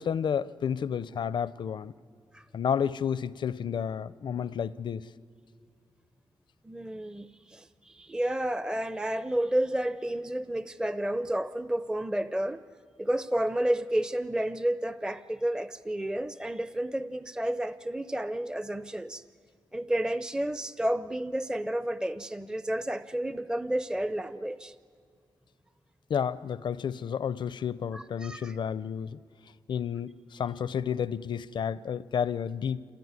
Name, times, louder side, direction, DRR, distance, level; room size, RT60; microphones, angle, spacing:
voice 1, 0.0-1.9 2.5-5.1 26.1-29.2 29.7-32.9, left 7 dB, 65° left, 0.5 m, -31 dB
voice 2, 6.6-12.6 13.0-19.2 19.7-24.7 27.9-28.5, right 1 dB, 10° right, 0.5 m, -31 dB
26.5 x 17.0 x 9.6 m
cardioid pair, 75°, 9 cm